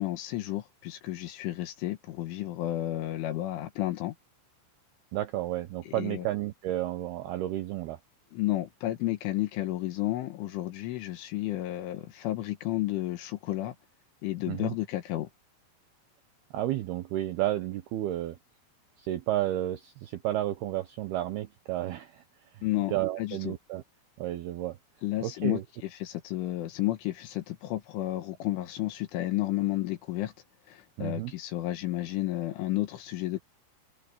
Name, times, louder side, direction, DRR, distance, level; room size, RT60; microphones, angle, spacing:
voice 1, 0.0-4.2 5.9-6.3 8.3-13.8 14.2-15.3 22.6-23.5 25.0-30.3 30.7-33.4, left 16 dB, 75° left, 3.8 m, -32 dB
voice 2, 5.1-8.0 14.5-14.7 16.5-18.4 19.0-22.2 22.5-22.6 22.9-23.8 24.2-24.8 25.2-25.6 31.0-31.3, right 14 dB, 80° right, 2.3 m, -32 dB
omnidirectional pair, 5.8 m